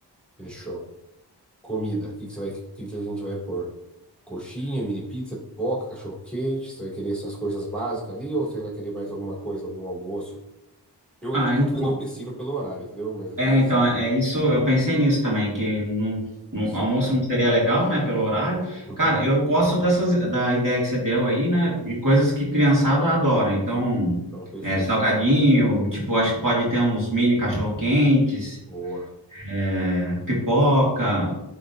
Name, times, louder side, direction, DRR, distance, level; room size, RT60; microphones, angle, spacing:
voice 1, 0.4-0.8 1.6-3.7 4.3-10.4 11.2-13.7 16.6-16.9 18.8-19.2 24.3-24.9 28.7-29.1, right 2 dB, ahead, -5 dB, 2.4 m, -31 dB
voice 2, 11.3-11.9 13.4-16.2 16.5-24.2 24.6-28.6 29.3-31.4, equal, 50° right, -5 dB, 2.3 m, -21 dB
10.0 x 3.8 x 2.6 m, 0.88 s
wide cardioid pair, 55°, 42 cm